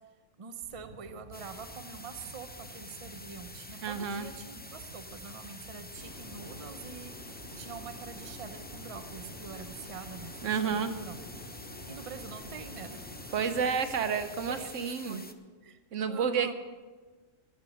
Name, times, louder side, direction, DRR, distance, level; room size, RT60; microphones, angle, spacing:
voice 1, 0.4-7.1 7.6-11.2 11.9-13.2 13.5-13.9 14.5-15.8 16.1-16.5, right 6 dB, 30° right, 9 dB, 0.8 m, -45 dB
sound 1, 0.6-14.6, right 2 dB, 60° right, 1.7 m, -51 dB
sound 2, 1.3-15.3, left 2 dB, 15° left, 0.4 m, -48 dB
voice 2, 3.8-4.3 10.4-10.9 13.3-15.2 15.9-16.5, right 6 dB, 75° right, 10 dB, 1.2 m, -30 dB
sound 3, 5.9-13.6, left 1 dB, 50° left, 1.6 m, -48 dB
14.0 x 9.4 x 6.4 m, 1.3 s
omnidirectional pair, 1.3 m